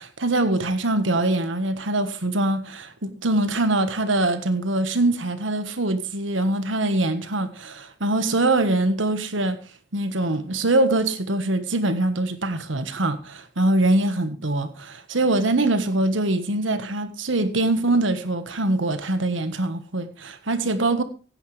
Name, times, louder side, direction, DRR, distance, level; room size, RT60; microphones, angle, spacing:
voice 1, 0.0-9.6 9.9-21.0, right 2 dB, 85° right, 1.4 m, -23 dB
16.0 x 9.8 x 3.3 m
head